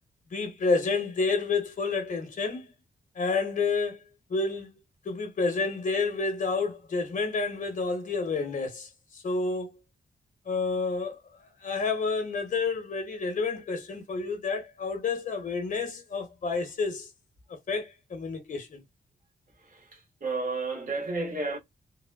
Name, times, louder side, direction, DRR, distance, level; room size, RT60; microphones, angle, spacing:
voice 1, 0.3-2.6 3.1-4.0 4.3-4.8 5.0-9.8 10.5-11.2 11.6-17.1 17.7-18.8, left 4 dB, 55° left, 0.9 m, -29 dB
voice 2, 19.6-21.6, right 3 dB, 60° right, 1.3 m, -32 dB
3.2 x 2.1 x 2.2 m
wide cardioid pair, 115°, 16 cm